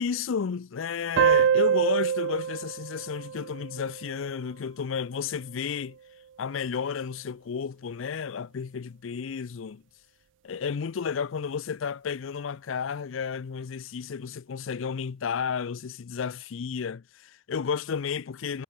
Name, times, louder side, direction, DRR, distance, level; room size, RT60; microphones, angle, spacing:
voice 1, 0.0-6.0 6.4-9.8 10.4-18.6, left 6 dB, 75° left, 0.5 m, -32 dB
sound 1, 1.2-4.3, right 7 dB, 65° right, 0.3 m, -25 dB
head